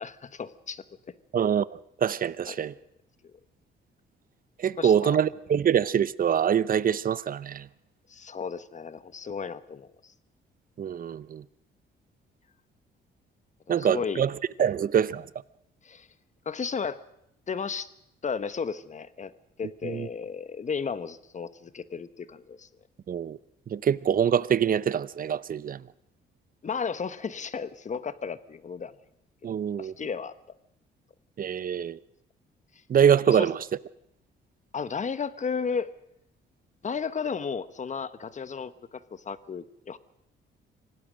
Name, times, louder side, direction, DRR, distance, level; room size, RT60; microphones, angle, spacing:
voice 1, 0.0-1.1 2.5-2.6 4.8-5.3 8.1-10.1 13.7-14.2 14.6-14.7 15.8-16.1 16.4-17.0 17.5-17.9 18.2-19.3 19.6-22.7 26.6-29.0 29.8-30.3 33.3-33.5 34.7-35.9 36.8-40.0, left 6 dB, 35° left, 1.2 m, -34 dB
voice 2, 1.3-1.6 2.0-2.7 4.6-7.6 10.8-11.4 13.7-14.3 14.6-15.2 19.8-20.1 23.1-23.4 23.7-25.8 29.4-29.9 31.4-32.0 32.9-33.6, right 8 dB, 45° right, 0.8 m, -24 dB
26.0 x 17.0 x 6.4 m
cardioid pair, 90°, 20 cm